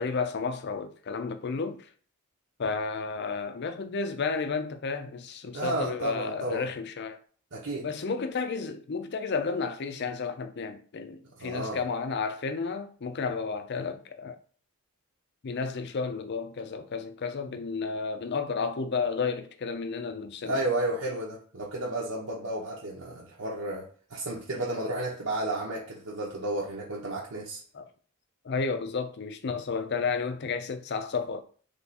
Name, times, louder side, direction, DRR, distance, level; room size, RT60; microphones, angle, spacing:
voice 1, 0.0-1.9 2.6-7.2 7.8-14.4 15.4-20.6 27.7-27.9 28.4-31.4, left 4 dB, 50° left, 0.5 m, -32 dB
voice 2, 5.5-6.6 7.5-7.9 11.4-11.8 20.5-27.6, right 2 dB, 70° right, 0.9 m, -32 dB
3.5 x 3.3 x 4.1 m
head